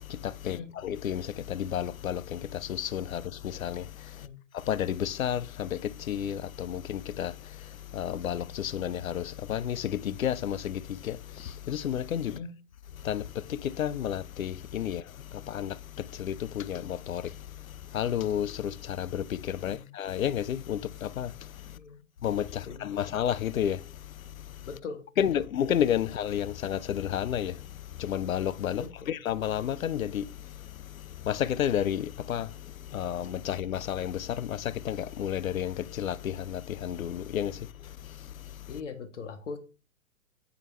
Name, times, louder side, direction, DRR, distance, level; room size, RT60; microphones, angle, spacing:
voice 1, 0.0-4.3 4.5-12.4 13.0-21.8 22.2-24.7 25.2-38.7, left 10 dB, 80° left, 0.5 m, -32 dB
voice 2, 21.7-22.0 22.6-23.0 24.6-25.5 28.7-29.2 38.7-39.6, left 5 dB, 60° left, 1.0 m, -41 dB
7.1 x 4.5 x 3.1 m
figure-of-eight pair, 110°, 41 cm